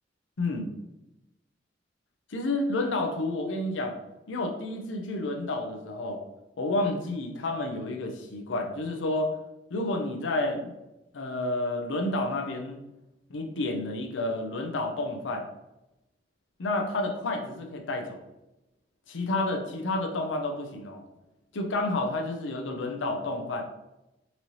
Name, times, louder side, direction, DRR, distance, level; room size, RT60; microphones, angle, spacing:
voice 1, 0.4-0.7 2.3-4.0 4.3-6.2 6.6-9.3 9.7-10.7 11.1-12.8 13.3-15.5 16.6-18.2 19.1-21.0 21.5-23.6, left 2 dB, 85° left, 3 dB, 0.6 m, -30 dB
4.1 x 3.0 x 2.8 m, 0.95 s
head